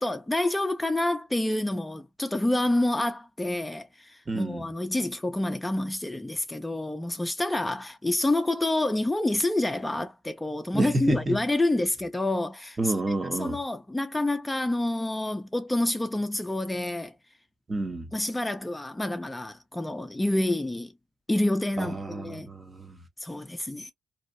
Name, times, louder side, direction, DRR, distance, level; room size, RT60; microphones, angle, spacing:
voice 1, 0.0-12.9 13.4-17.1 18.1-20.9 21.3-22.5 23.2-23.9, left 1 dB, 10° left, 0.4 m, -28 dB
voice 2, 4.3-4.7 10.7-11.4 12.8-13.6 17.7-18.1 21.8-23.1, right 2 dB, 25° right, 0.7 m, -29 dB
2.7 x 2.0 x 2.5 m
cardioid pair, 90°, 0 cm